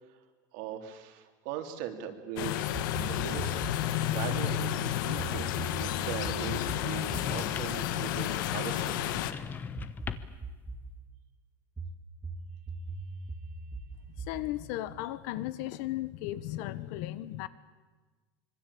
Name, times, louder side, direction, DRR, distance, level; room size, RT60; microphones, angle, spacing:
voice 1, 0.5-3.7 4.1-9.2, right 8 dB, 55° right, 6 dB, 3.3 m, -40 dB
sound 1, 2.4-9.3, left 12 dB, 75° left, 1.7 m, -31 dB
sound 2, 2.7-4.0 5.2-8.9 9.8-11.0 11.8-15.7, right 2 dB, 10° right, 1.7 m, -42 dB
sound 3, 7.0-7.9 9.0-10.5, left 6 dB, 15° left, 1.0 m, -40 dB
voice 2, 14.1-17.5, left 15 dB, 60° left, 15 dB, 1.4 m, -36 dB
26.0 x 24.0 x 8.7 m, 1.3 s
cardioid pair, 175°, 11 cm